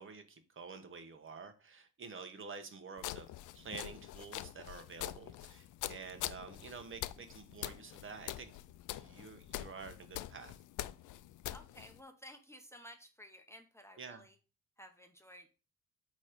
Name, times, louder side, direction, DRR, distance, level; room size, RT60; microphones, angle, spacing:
voice 1, 0.0-3.3 3.5-8.5 8.9-10.5 14.0-14.2, right 5 dB, 40° right, 1.3 m, -49 dB
sound 1, 3.0-12.0, left 14 dB, 80° left, 0.5 m, -45 dB
voice 2, 11.5-14.4 14.8-15.5, equal, 10° left, 0.9 m, -55 dB
8.4 x 3.2 x 5.1 m
cardioid pair, 90°, 30 cm